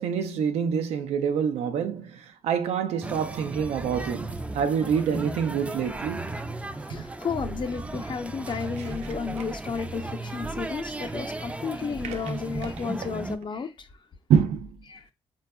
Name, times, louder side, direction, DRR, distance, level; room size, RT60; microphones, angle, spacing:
voice 1, 0.0-6.3 8.8-8.9 12.0-12.2 12.6-12.7 14.3-14.7, right 7 dB, 80° right, 0.4 m, -26 dB
sound 1, 3.0-13.4, right 2 dB, 10° right, 0.4 m, -35 dB
voice 2, 6.9-13.7 14.9-15.0, left 5 dB, 45° left, 0.6 m, -33 dB
3.9 x 2.3 x 2.2 m
supercardioid pair, 50°, 11 cm